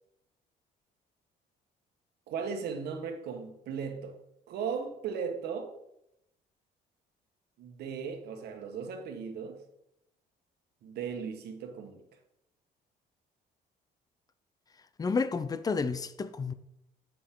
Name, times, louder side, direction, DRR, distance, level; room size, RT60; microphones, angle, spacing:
voice 1, 2.3-4.2 4.5-5.7 7.6-9.6 10.8-12.0, right 6 dB, 70° right, 1.5 m, -37 dB
voice 2, 15.0-16.5, left 4 dB, 20° left, 0.6 m, -30 dB
7.7 x 7.0 x 3.8 m
cardioid pair, 110°, 17 cm